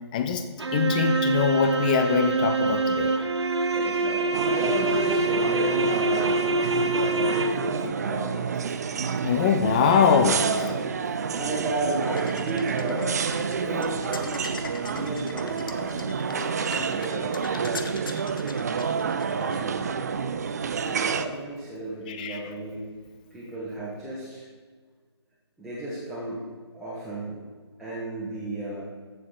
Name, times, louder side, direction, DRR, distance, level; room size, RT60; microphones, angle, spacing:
voice 1, 0.1-0.4 0.7-3.2 6.6-6.9 9.2-10.7 13.4-13.6 15.8-15.9 16.2-16.5 22.1-22.4, left 6 dB, 15° left, 8 dB, 0.5 m, -23 dB
sound 1, 0.6-7.9, right 2 dB, 70° right, 0.9 m, -25 dB
voice 2, 3.7-8.7 9.6-10.2 10.5-10.9 11.3-13.0 13.5-14.5 14.8-16.1 16.5-17.9 19.3-20.0 20.6-22.8 23.3-24.4 25.6-26.4 26.7-27.4 27.8-28.8, right 1 dB, ahead, -11 dB, 1.4 m, -34 dB
sound 2, 4.3-21.3, right 6 dB, 35° right, 0.5 m, -29 dB
sound 3, 12.2-19.9, left 4 dB, 50° left, 0.9 m, -41 dB
14.5 x 6.4 x 3.9 m, 1.5 s
figure-of-eight pair, 145°, 15 cm